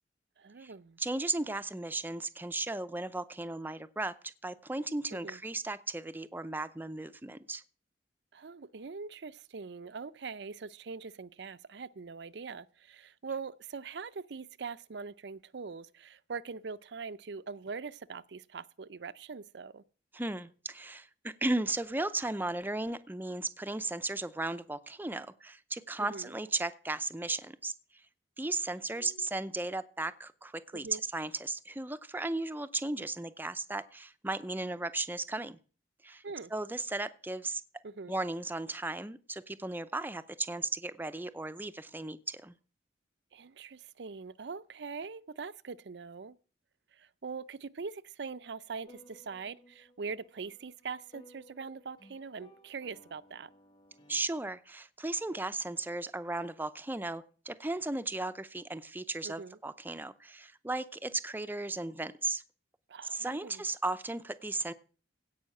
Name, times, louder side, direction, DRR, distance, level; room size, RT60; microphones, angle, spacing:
voice 1, 0.4-1.0 5.1-5.4 8.3-19.8 26.0-26.3 28.9-29.3 30.7-31.0 36.2-36.5 37.8-38.1 43.3-46.4 46.9-53.5 59.2-59.6 62.9-63.6, right 5 dB, 65° right, 0.5 m, -42 dB
voice 2, 1.0-7.6 20.1-27.7 28.4-30.9 31.1-35.6 36.0-36.2 36.5-37.6 38.1-42.5 54.1-62.4 63.1-64.7, right 2 dB, 10° right, 0.5 m, -36 dB
sound 1, 48.9-54.2, left 1 dB, 25° left, 1.5 m, -59 dB
16.5 x 5.6 x 7.6 m
head